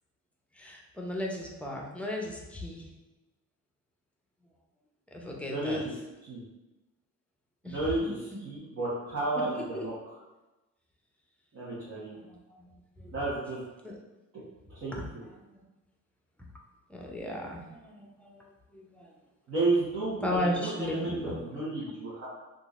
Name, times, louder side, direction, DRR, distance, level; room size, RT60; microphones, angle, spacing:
voice 1, 0.5-2.9 5.1-5.8 7.6-8.1 9.4-9.8 11.9-13.2 13.8-14.0 14.9-15.6 16.9-19.1 20.2-21.4 21.8-21.9, left 1 dB, 5° left, -1 dB, 0.6 m, -36 dB
voice 2, 5.5-5.9 6.3-6.4 7.6-8.2 8.4-9.9 11.5-12.2 13.1-13.6 14.7-15.0 19.5-22.2, right 2 dB, 55° right, -10 dB, 1.1 m, -32 dB
3.8 x 2.5 x 2.4 m, 1.1 s
cardioid pair, 90°, 30 cm